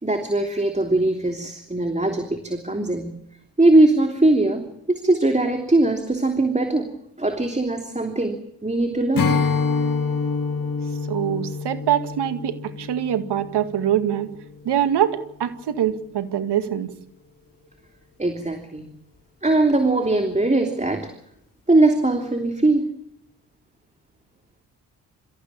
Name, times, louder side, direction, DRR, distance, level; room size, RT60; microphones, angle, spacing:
voice 1, 0.0-3.1 3.6-9.4 18.2-18.9 19.4-21.1 21.7-22.9, right 2 dB, 15° right, 5 dB, 3.1 m, -21 dB
Strum, 9.1-14.6, left 4 dB, 50° left, 3.4 m, -26 dB
voice 2, 11.1-14.3 14.7-16.9, right 10 dB, 70° right, 10 dB, 2.2 m, -24 dB
26.0 x 15.0 x 8.7 m, 0.77 s
supercardioid pair, 50°, 41 cm